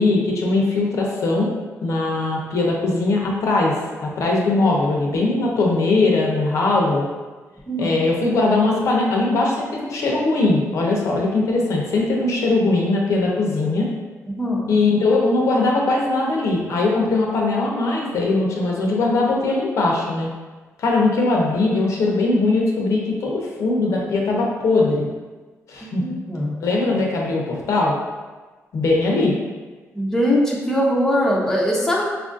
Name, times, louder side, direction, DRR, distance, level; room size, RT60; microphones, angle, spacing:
voice 1, 0.0-1.5 1.8-3.7 4.0-7.1 7.8-13.9 14.7-20.3 20.8-25.1 25.7-26.0 26.6-28.0 28.7-29.3, left 2 dB, 65° left, -2 dB, 0.7 m, -20 dB
voice 2, 7.7-8.0 14.3-14.7 25.8-26.5 29.9-32.0, equal, 10° left, -4 dB, 0.6 m, -21 dB
4.8 x 2.5 x 2.5 m, 1.3 s
cardioid pair, 110°, 6 cm